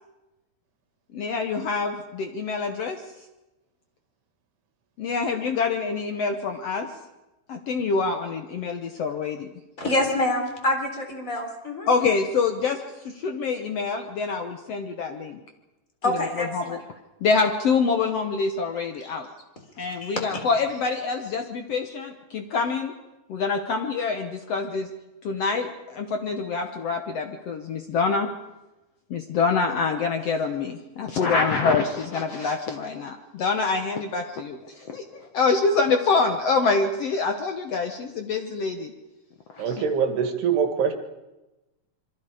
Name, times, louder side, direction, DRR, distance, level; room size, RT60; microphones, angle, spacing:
voice 1, 1.1-3.0 5.0-6.9 7.5-9.5 11.9-15.4 16.0-16.8 17.2-19.3 19.8-22.9 23.3-24.9 25.2-28.3 29.1-38.9 39.5-39.8, left 4 dB, 90° left, 5 dB, 1.3 m, -26 dB
voice 2, 9.8-11.9 16.0-16.8 19.8-20.4, left 1 dB, 20° left, 3 dB, 3.7 m, -26 dB
voice 3, 39.6-40.9, right 7 dB, 75° right, 6 dB, 3.9 m, -23 dB
27.0 x 24.0 x 5.0 m, 1.0 s
omnidirectional pair, 4.7 m